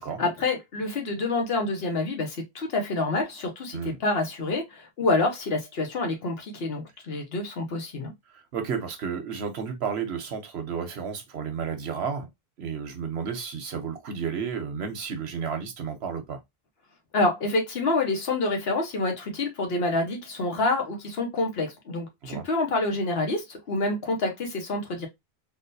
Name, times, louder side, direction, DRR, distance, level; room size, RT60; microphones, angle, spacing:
voice 1, 0.2-8.1 17.1-25.1, left 2 dB, 70° left, 1.2 m, -27 dB
voice 2, 8.3-12.3 12.6-16.4 22.2-22.5, right 6 dB, 80° right, 1.1 m, -32 dB
3.8 x 2.4 x 2.5 m
omnidirectional pair, 1.1 m